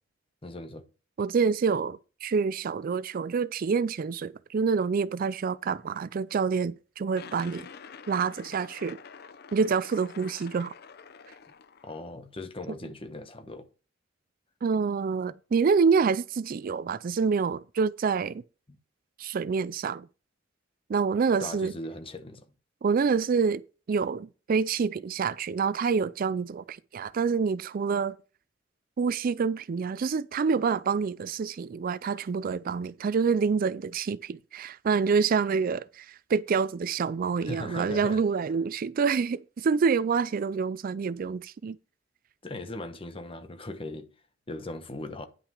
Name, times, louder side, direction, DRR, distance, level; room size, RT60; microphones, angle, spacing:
voice 1, 0.4-0.8 11.8-13.7 21.4-22.5 37.4-38.2 42.4-44.1 44.5-45.3, left 1 dB, 30° left, 1.1 m, -39 dB
voice 2, 1.2-7.7 8.1-9.0 9.5-10.7 14.6-18.4 19.2-20.1 20.9-21.7 22.8-23.6 23.9-28.2 29.0-41.8, right 5 dB, 50° right, 0.4 m, -27 dB
sound 1, 7.1-12.1, left 6 dB, 55° left, 0.6 m, -47 dB
10.0 x 6.0 x 4.8 m
head